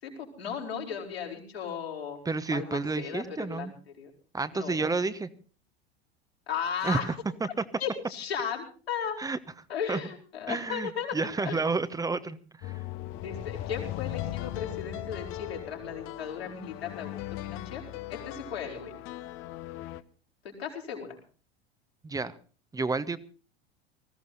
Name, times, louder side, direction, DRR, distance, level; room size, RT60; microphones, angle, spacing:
voice 1, 0.0-2.2 2.5-4.1 4.5-4.8 6.5-7.1 7.8-9.2 9.7-11.6 13.1-17.8 18.1-18.9 20.4-21.2, left 7 dB, 75° left, -1 dB, 5.0 m, -36 dB
voice 2, 2.2-3.7 4.3-5.3 6.8-7.0 9.2-9.4 9.9-10.0 10.5-12.7 22.0-22.3 22.7-23.2, right 3 dB, 10° right, 14 dB, 1.0 m, -30 dB
sound 1, 12.6-20.0, left 14 dB, 40° left, 1.0 m, -38 dB
20.0 x 15.5 x 4.0 m, 0.38 s
figure-of-eight pair, 80°, 31 cm